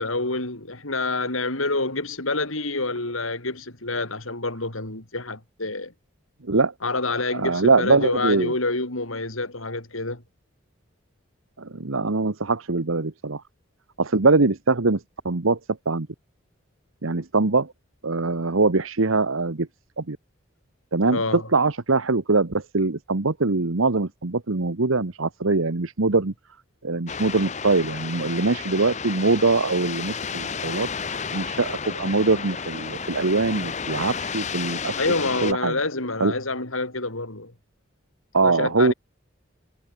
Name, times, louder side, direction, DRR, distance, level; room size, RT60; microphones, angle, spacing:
voice 1, 0.0-5.9 6.8-10.2 21.1-21.5 35.0-37.5 38.4-38.9, left 2 dB, 90° left, 5.9 m, -27 dB
voice 2, 6.4-6.7 7.3-8.5 11.6-13.4 14.0-15.6 15.8-16.1 17.0-17.7 18.0-19.7 20.0-20.2 20.9-26.3 26.8-30.9 31.3-35.0 35.4-35.7 36.2-36.3 38.3-38.9, right 3 dB, 85° right, 1.2 m, -22 dB
sound 1, 27.1-35.5, left 6 dB, 35° left, 0.9 m, -32 dB
head